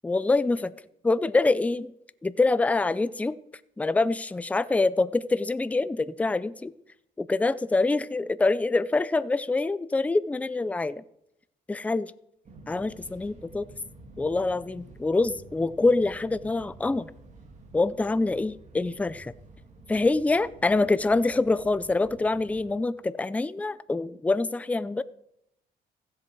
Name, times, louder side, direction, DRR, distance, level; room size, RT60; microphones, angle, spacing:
voice 1, 0.0-0.7 1.0-1.9 2.2-3.4 3.8-6.7 7.2-11.0 11.7-12.1 12.7-13.7 14.2-17.1 17.7-19.3 19.9-25.0, left 3 dB, 10° left, 16 dB, 0.4 m, -25 dB
Fixed-wing aircraft airplane, 12.4-22.8, right 2 dB, 45° right, 1.9 m, -50 dB
15.5 x 7.5 x 4.5 m, 0.78 s
cardioid pair, 110°, 17 cm